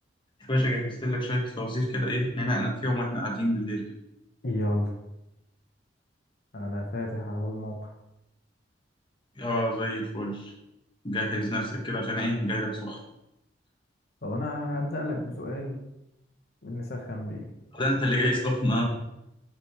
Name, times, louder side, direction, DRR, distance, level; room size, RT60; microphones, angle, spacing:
voice 1, 0.5-3.8 9.4-10.5 11.0-13.0 17.7-18.8, equal, 25° left, -1 dB, 1.3 m, -27 dB
voice 2, 4.4-4.9 6.5-7.9 14.2-15.8 16.6-17.5, left 1 dB, 60° left, 1 dB, 1.1 m, -31 dB
5.8 x 4.9 x 4.8 m, 0.86 s
head